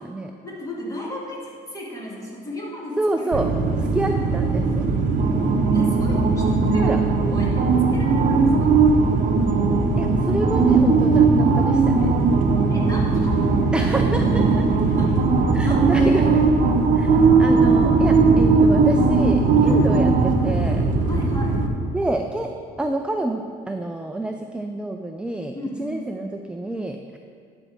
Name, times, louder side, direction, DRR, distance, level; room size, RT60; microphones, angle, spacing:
voice 1, 0.4-3.5 5.7-6.5 6.7-7.0 7.3-7.7 7.9-8.8 12.7-13.4 15.0-16.4 19.6-19.9 21.1-21.7 25.5-26.1, left 1 dB, 20° left, -3 dB, 2.1 m, -34 dB
voice 2, 3.0-3.5 3.8-4.9 6.7-7.0 10.0-12.1 13.7-14.7 15.5-16.2 16.9-20.9 21.9-22.5 22.8-27.2, right 2 dB, 5° right, 5 dB, 0.4 m, -28 dB
sound 1, 3.3-21.7, right 4 dB, 50° right, 0.9 m, -18 dB
10.5 x 4.3 x 6.4 m, 2.2 s
cardioid pair, 110°, 17 cm